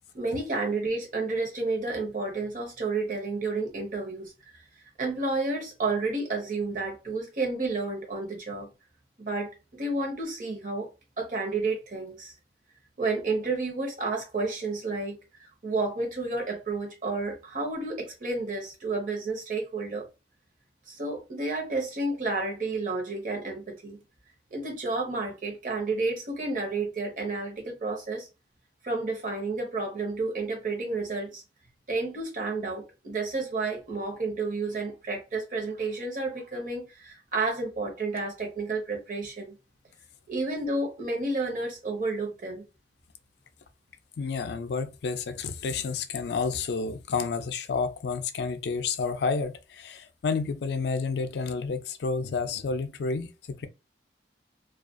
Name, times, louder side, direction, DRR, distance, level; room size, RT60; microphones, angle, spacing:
voice 1, 0.1-4.6 5.0-8.7 9.2-9.5 9.8-10.9 11.2-12.3 13.0-20.1 20.9-24.0 24.5-28.3 28.8-31.4 31.9-39.6 40.3-42.7, right 3 dB, 45° right, 0.9 m, -31 dB
voice 2, 44.2-53.7, left 4 dB, 60° left, 0.4 m, -30 dB
2.4 x 2.2 x 2.5 m
head